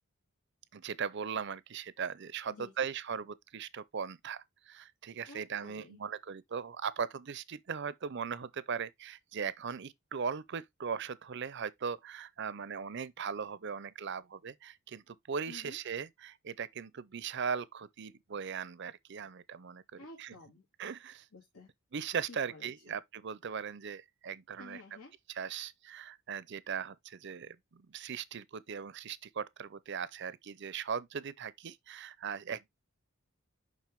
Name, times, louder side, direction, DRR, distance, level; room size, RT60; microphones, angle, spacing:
voice 1, 0.7-20.3 20.8-21.3 21.9-24.8 25.3-32.7, right 6 dB, 50° right, 0.5 m, -39 dB
voice 2, 2.5-2.9 5.3-6.0 15.5-15.8 20.0-20.6 21.3-21.7 22.3-23.0 24.6-25.1, left 3 dB, 90° left, 2.3 m, -52 dB
7.4 x 5.6 x 3.4 m
head